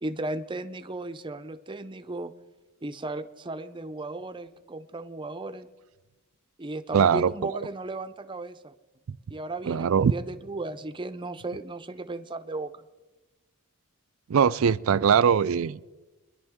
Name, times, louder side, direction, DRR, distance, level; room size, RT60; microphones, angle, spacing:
voice 1, 0.0-2.3 2.8-5.7 6.6-8.7 9.3-12.7, right 2 dB, 20° right, 0.6 m, -35 dB
voice 2, 6.9-7.3 9.7-10.1 14.3-15.9, right 7 dB, 70° right, 0.4 m, -21 dB
22.5 x 11.0 x 3.6 m
head